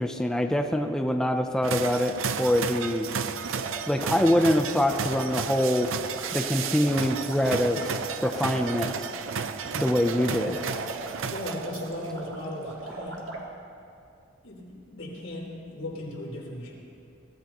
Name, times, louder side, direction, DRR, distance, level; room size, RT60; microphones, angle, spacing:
voice 1, 0.0-3.1 3.9-5.9 6.3-7.9 8.2-9.1 9.8-10.6, left 1 dB, 5° left, 4 dB, 0.5 m, -24 dB
sound 1, 1.6-12.1, right 6 dB, 90° right, 0.6 m, -33 dB
sound 2, 3.5-13.4, right 2 dB, 70° right, 2.0 m, -39 dB
voice 2, 11.3-13.2 14.4-16.7, left 1 dB, 80° left, -4 dB, 3.9 m, -37 dB
22.5 x 15.5 x 3.0 m, 2.5 s
head